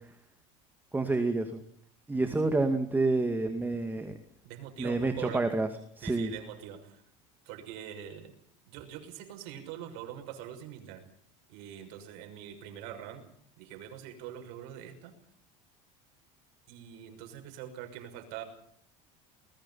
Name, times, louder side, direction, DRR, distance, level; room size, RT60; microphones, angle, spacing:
voice 1, 0.9-1.6 2.1-4.2 4.8-5.7 6.0-6.3, right 3 dB, 10° right, 7 dB, 2.3 m, -28 dB
voice 2, 4.4-5.5 6.0-7.0 7.4-8.3 8.7-11.0 11.5-13.2 13.6-15.1 16.7-18.4, right 10 dB, 70° right, 7 dB, 6.3 m, -43 dB
29.5 x 20.5 x 5.7 m, 0.63 s
supercardioid pair, 115°, 16 cm